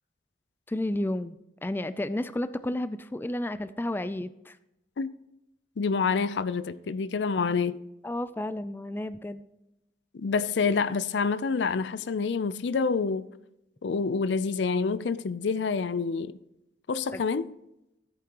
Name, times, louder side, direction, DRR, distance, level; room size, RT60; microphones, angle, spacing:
voice 1, 0.7-1.4 1.6-4.6 8.0-9.5 17.1-17.2, left 1 dB, 10° left, 0.3 m, -32 dB
voice 2, 5.8-7.8 10.1-13.3 13.8-16.3 16.9-17.5, left 5 dB, 75° left, 0.5 m, -27 dB
14.0 x 8.5 x 2.9 m
head